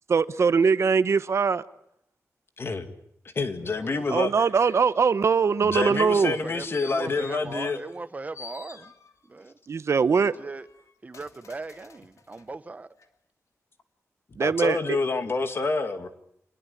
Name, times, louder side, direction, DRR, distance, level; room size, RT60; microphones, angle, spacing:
voice 1, 0.1-1.6 4.1-6.3 9.7-10.3 14.4-14.8, right 5 dB, 60° right, 1.0 m, -22 dB
voice 2, 2.6-2.9 3.2-4.3 5.6-7.8 14.4-16.1, left 3 dB, 50° left, 2.3 m, -28 dB
voice 3, 3.6-4.4 6.1-8.9 9.2-9.6 10.2-10.7 11.0-12.9, right 3 dB, 30° right, 1.2 m, -39 dB
sound 1, 6.2-8.1 8.3-9.4 9.9-12.5 13.0-13.1, left 5 dB, 75° left, 2.9 m, -49 dB
27.0 x 21.5 x 8.6 m
wide cardioid pair, 165°, 5 cm